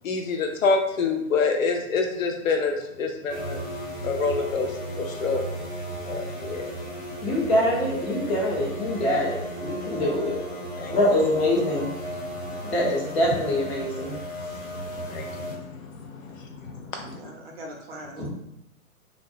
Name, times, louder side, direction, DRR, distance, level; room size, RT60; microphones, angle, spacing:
voice 1, 0.0-3.6 4.0-5.4 6.0-6.7 10.8-10.9 12.3-12.6 15.0-16.9, left 4 dB, 65° left, 3 dB, 0.6 m, -27 dB
sound 1, 3.3-15.5, equal, 15° left, 0.9 m, -35 dB
voice 2, 7.2-10.4 10.9-11.9 12.7-14.1 18.2-18.3, left 1 dB, 45° left, -4 dB, 1.2 m, -24 dB
voice 3, 16.9-18.3, right 1 dB, 45° right, 0 dB, 0.7 m, -41 dB
2.5 x 2.1 x 3.5 m, 0.79 s
hypercardioid pair, 135°, 43 cm